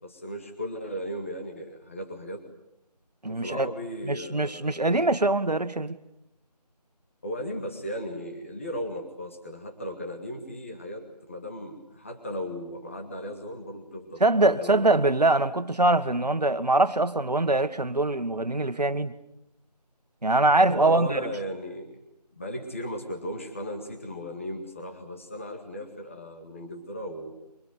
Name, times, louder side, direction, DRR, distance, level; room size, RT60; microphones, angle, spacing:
voice 1, 0.0-2.4 3.3-4.9 7.2-14.9 20.7-22.1 22.3-27.3, equal, 20° left, 2.0 m, -36 dB
voice 2, 3.2-3.7 4.1-6.0 14.2-19.1 20.2-21.2, right 2 dB, 70° right, 1.7 m, -23 dB
24.5 x 23.0 x 9.4 m
figure-of-eight pair, 175°, 21 cm